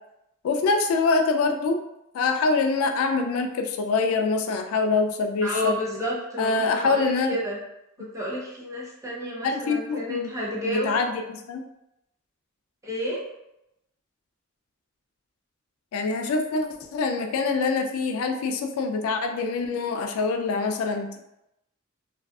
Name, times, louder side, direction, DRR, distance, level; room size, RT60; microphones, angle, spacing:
voice 1, 0.4-1.8 2.1-5.7 6.4-7.4 9.4-10.3 10.7-11.6 15.9-21.2, left 4 dB, 80° left, 4 dB, 0.3 m, -25 dB
voice 2, 5.4-7.6 8.0-11.1 12.8-13.2, equal, 15° right, -5 dB, 0.6 m, -31 dB
2.5 x 2.3 x 2.3 m, 0.85 s
head